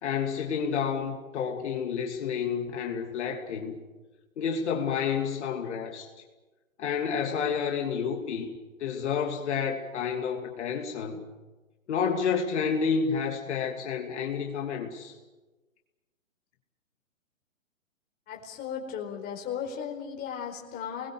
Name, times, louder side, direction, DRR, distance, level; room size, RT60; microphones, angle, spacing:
voice 1, 0.0-3.8 4.4-6.1 6.8-8.5 8.8-11.2 11.9-15.1, left 6 dB, 55° left, 1 dB, 2.9 m, -30 dB
voice 2, 18.3-21.1, left 7 dB, 25° left, 1 dB, 4.6 m, -36 dB
28.5 x 21.5 x 7.8 m, 1.2 s
hypercardioid pair, 140°, 40 cm